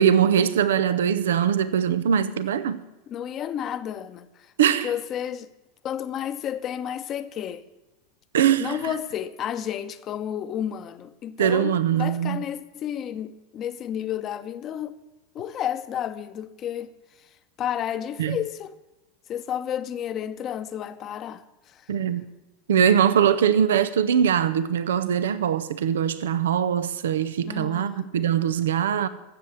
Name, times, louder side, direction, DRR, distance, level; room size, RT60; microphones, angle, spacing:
voice 1, 0.0-2.8 4.6-4.9 8.3-8.8 11.4-12.4 18.2-18.4 21.9-22.3 22.7-29.1, right 8 dB, 75° right, 0.7 m, -22 dB
voice 2, 3.1-4.5 4.8-5.5 5.8-7.6 8.6-15.0 15.3-16.9 17.2-17.3 17.6-18.8 19.3-21.9 27.4-28.1, left 10 dB, 40° left, 0.9 m, -31 dB
13.5 x 7.5 x 8.1 m
hypercardioid pair, 90°, 0 cm